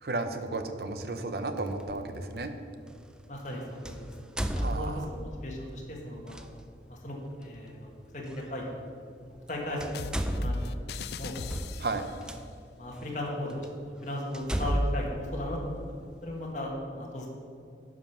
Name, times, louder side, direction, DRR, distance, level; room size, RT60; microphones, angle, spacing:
voice 1, 0.0-2.5 4.6-5.1 11.8-12.1, right 2 dB, 65° right, 8 dB, 0.7 m, -33 dB
sound 1, 1.8-1.9 3.8-5.3 6.3-6.5 8.3-8.4 9.4-9.5 9.8-12.4 13.0-13.1 13.6-13.7 14.3-16.1, right 1 dB, 5° right, 0.3 m, -32 dB
voice 2, 3.3-4.0 4.7-6.4 6.9-8.8 9.5-9.8 10.4-10.8 11.1-11.4 12.8-15.8 16.2-17.3, left 1 dB, 45° left, -2 dB, 1.7 m, -36 dB
sound 2, 9.9-12.3, left 5 dB, 70° left, 0.4 m, -40 dB
10.5 x 5.2 x 5.9 m, 2.4 s
head